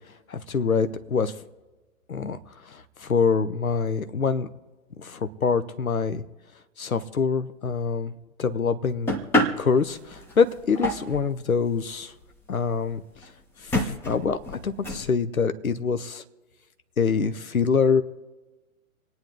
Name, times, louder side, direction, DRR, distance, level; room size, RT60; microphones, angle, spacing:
voice 1, 0.3-1.4 2.1-4.5 5.0-6.2 6.8-8.1 8.4-12.1 12.5-13.0 13.6-16.2 17.0-18.0, left 5 dB, 75° left, 10 dB, 1.2 m, -25 dB
sound 1, 9.1-11.3 11.9-12.0 12.2-12.3 12.5-12.6 13.2-13.3 13.7-15.1, left 1 dB, 5° left, 0.7 m, -27 dB
26.5 x 9.6 x 3.8 m, 1.2 s
figure-of-eight pair, 120°, 43 cm